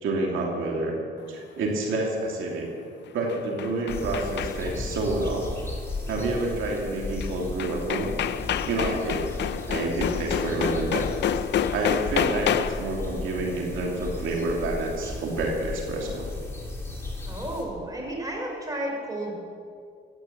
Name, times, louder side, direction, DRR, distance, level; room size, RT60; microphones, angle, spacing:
voice 1, 0.0-0.9 1.3-2.7 3.1-5.4 6.1-8.1 8.7-9.3 9.7-11.1 11.7-16.3, right 2 dB, 80° right, -1 dB, 2.8 m, -28 dB
sound 1, 3.1-4.9 7.2-7.3 7.6-13.0, left 9 dB, 60° left, 0.6 m, -29 dB
sound 2, 3.9-17.6, left 2 dB, 10° left, 3.8 m, -35 dB
voice 2, 17.3-19.4, right 1 dB, 20° right, 0 dB, 4.8 m, -32 dB
15.5 x 9.4 x 7.3 m, 2.2 s
cardioid pair, 90°, 20 cm